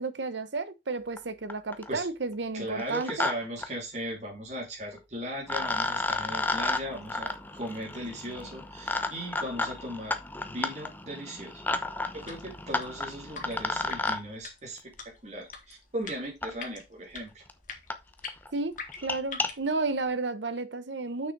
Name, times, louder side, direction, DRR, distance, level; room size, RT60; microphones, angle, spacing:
voice 1, 0.0-3.3 18.5-21.3, right 3 dB, 80° right, 1.0 m, -32 dB
sound 1, 1.2-1.3 1.5-2.0 2.8-3.3 3.6-3.7 5.0-5.1 5.5-14.2 15.5-15.6 16.4-16.5 17.2-17.3 17.5-17.6 17.9-18.0 18.3-18.5 18.9-19.5, left 2 dB, 10° left, 0.8 m, -32 dB
voice 2, 2.5-10.1 10.4-11.6 12.1-14.9 15.2-17.4, equal, 40° right, 2.8 m, -37 dB
sound 2, 12.1-19.7, left 5 dB, 50° left, 1.8 m, -45 dB
6.5 x 6.3 x 4.7 m
head